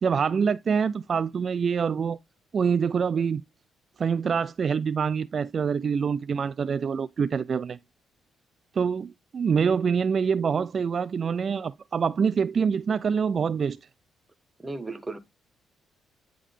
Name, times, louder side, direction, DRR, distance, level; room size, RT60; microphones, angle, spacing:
voice 1, 0.0-2.2 2.5-3.4 4.0-7.8 8.7-13.8, right 6 dB, 45° right, 0.3 m, -25 dB
voice 2, 14.6-15.2, right 3 dB, 15° right, 1.5 m, -35 dB
10.0 x 3.5 x 3.6 m
cardioid pair, 90°, 0 cm